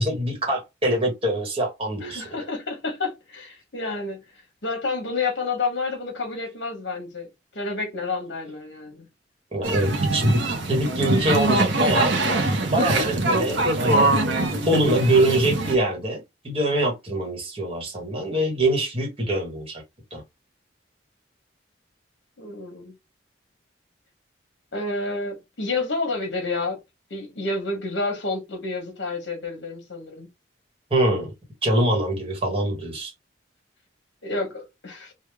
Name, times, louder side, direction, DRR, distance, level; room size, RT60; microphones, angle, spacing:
voice 1, 0.0-2.4 9.5-10.4 10.7-14.1 14.6-19.8 20.1-20.2 30.9-31.3 31.6-33.1, right 1 dB, 30° right, 1.2 m, -24 dB
voice 2, 2.0-4.2 4.6-7.3 7.5-9.0 22.4-22.9 24.7-26.8 27.1-30.3 34.2-35.1, left 3 dB, 65° left, 1.1 m, -29 dB
sound 1, 9.6-15.8, right 2 dB, 75° right, 0.9 m, -23 dB
3.4 x 2.3 x 3.3 m
head